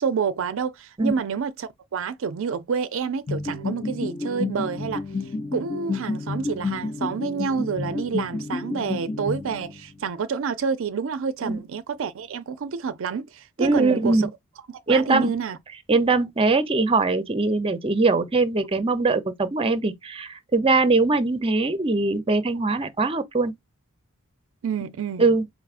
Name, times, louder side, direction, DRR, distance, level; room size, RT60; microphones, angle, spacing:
voice 1, 0.0-5.0 5.5-14.3 14.7-15.6 24.6-25.2, right 6 dB, 65° right, 0.4 m, -28 dB
sound 1, 3.3-10.0, left 3 dB, 25° left, 0.6 m, -30 dB
voice 2, 13.6-14.3 14.9-15.3 15.9-23.5 25.2-25.4, right 3 dB, 25° right, 0.6 m, -21 dB
4.7 x 3.6 x 2.4 m
head